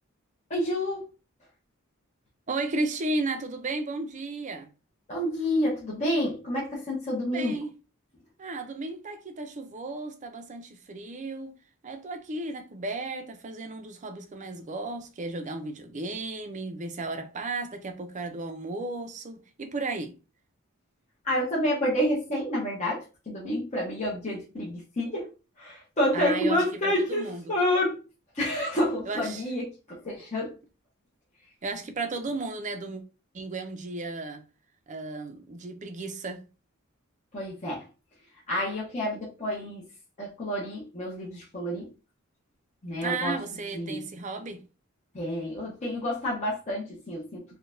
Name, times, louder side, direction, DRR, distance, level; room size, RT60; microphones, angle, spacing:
voice 1, 0.5-1.1 5.1-7.6 21.2-25.3 25.6-28.0 28.3-30.5 37.3-37.8 38.5-39.8 40.2-41.9 42.8-43.4 43.7-44.0 45.1-47.4, left 1 dB, 35° left, 0.9 m, -29 dB
voice 2, 2.5-4.7 7.3-7.7 8.4-11.5 11.8-20.1 26.1-27.4 29.1-29.4 31.6-33.0 33.3-34.4 34.9-36.5 43.0-44.6, right 3 dB, 35° right, 0.5 m, -34 dB
3.8 x 2.2 x 2.5 m
head